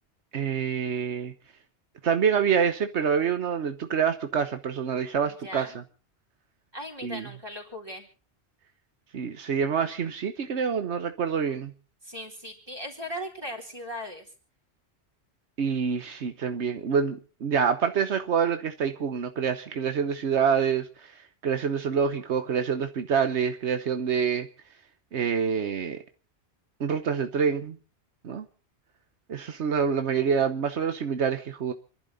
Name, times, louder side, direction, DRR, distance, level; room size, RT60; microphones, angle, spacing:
voice 1, 0.3-1.3 2.0-5.7 7.0-7.2 9.1-11.7 15.6-21.1 21.4-24.5 25.1-26.0 26.8-27.8 28.2-28.5 29.3-31.7, right 6 dB, 80° right, 8 dB, 1.3 m, -26 dB
voice 2, 5.3-5.8 6.7-8.1 12.0-14.3, equal, 20° right, 1 dB, 4.0 m, -38 dB
28.5 x 11.5 x 4.1 m, 0.37 s
omnidirectional pair, 1.2 m